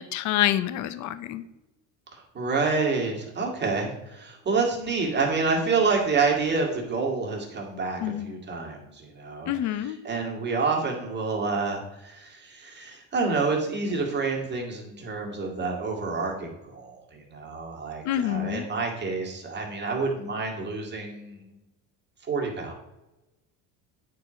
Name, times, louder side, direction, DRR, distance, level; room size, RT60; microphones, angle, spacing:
voice 1, 0.0-1.4 8.0-8.3 9.5-10.0 18.0-18.7, left 12 dB, 50° left, 13 dB, 0.6 m, -27 dB
voice 2, 2.1-21.6 22.3-22.7, right 4 dB, 30° right, 0 dB, 2.0 m, -28 dB
8.9 x 4.8 x 5.0 m, 0.98 s
cardioid pair, 140°, 37 cm